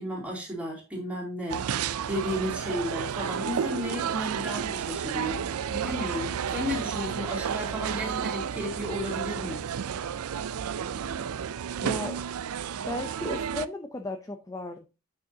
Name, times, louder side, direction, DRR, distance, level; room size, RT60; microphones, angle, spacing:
voice 1, 0.0-9.6, equal, 5° right, 2.9 m, -34 dB
sound 1, 1.5-13.7, right 8 dB, 80° right, 0.4 m, -32 dB
voice 2, 11.8-12.2 12.9-14.9, left 1 dB, 15° left, 0.5 m, -35 dB
8.7 x 6.3 x 2.8 m
head